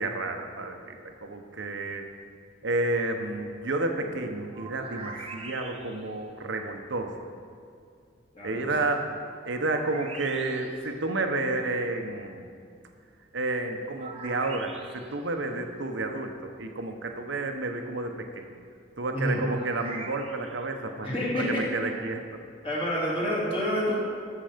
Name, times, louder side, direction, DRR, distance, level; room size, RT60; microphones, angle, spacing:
voice 1, 0.0-2.1 2.6-7.1 8.4-9.0 9.4-12.5 13.3-18.5 19.0-21.1 21.3-22.4, right 2 dB, 65° right, 5 dB, 1.0 m, -31 dB
sound 1, 4.5-6.2 9.7-10.9 14.0-15.2 19.3-20.7, right 3 dB, 30° right, 1.1 m, -43 dB
voice 2, 8.3-8.7 19.1-19.4 21.0-21.7 22.6-24.0, equal, 30° left, -6 dB, 3.1 m, -28 dB
13.5 x 6.8 x 5.2 m, 2.3 s
head